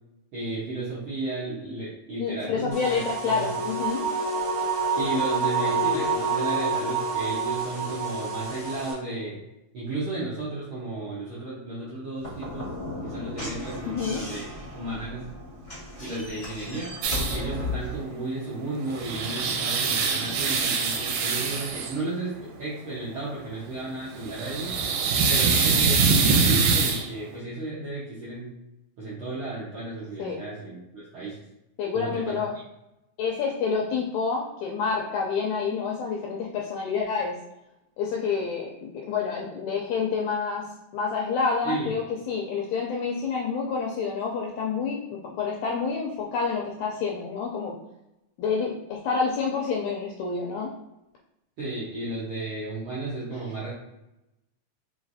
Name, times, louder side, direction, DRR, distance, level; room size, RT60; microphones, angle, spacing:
voice 1, 0.3-3.5 5.0-9.4 9.7-12.7 13.0-15.3 16.0-16.9 17.2-24.7 25.3-28.5 29.0-31.4 31.9-32.3 41.6-41.9 51.6-53.7, right 2 dB, 75° right, -9 dB, 1.2 m, -34 dB
voice 2, 2.2-4.0 13.8-14.2 30.2-30.4 31.8-32.5 33.2-37.4 38.0-40.7 40.9-47.8 48.4-50.7 53.3-53.4, left 5 dB, 80° left, -1 dB, 1.7 m, -28 dB
sound 1, 2.7-8.9, right 4 dB, 55° right, 0.6 m, -27 dB
Slam / Knock, 12.2-18.0, left 2 dB, 65° left, 0.6 m, -35 dB
sound 2, 17.0-17.4 18.7-22.0 24.2-27.1, right 5 dB, 90° right, 2.2 m, -24 dB
4.8 x 3.2 x 2.6 m, 0.91 s
omnidirectional pair, 3.8 m